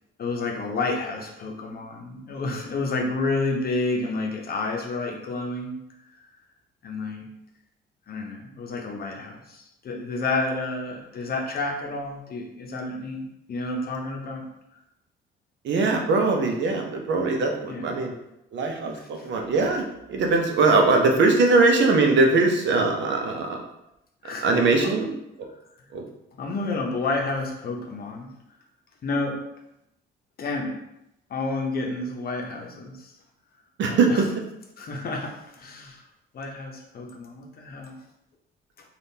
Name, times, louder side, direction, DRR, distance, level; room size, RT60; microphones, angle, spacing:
voice 1, 0.2-5.8 6.2-6.3 6.8-7.3 8.1-14.5 17.6-18.0 18.9-19.1 24.2-24.5 24.8-24.9 26.3-28.3 29.0-29.4 30.4-30.8 31.3-33.1 33.9-34.2 34.8-36.0 36.3-38.0, left 3 dB, 50° left, 1 dB, 0.7 m, -30 dB
voice 2, 15.6-18.1 18.5-19.8 20.1-23.6 24.4-25.1 25.9-26.0 33.8-34.2, right 3 dB, 65° right, 2 dB, 0.6 m, -21 dB
3.5 x 2.4 x 2.7 m, 0.84 s
cardioid pair, 90°, 20 cm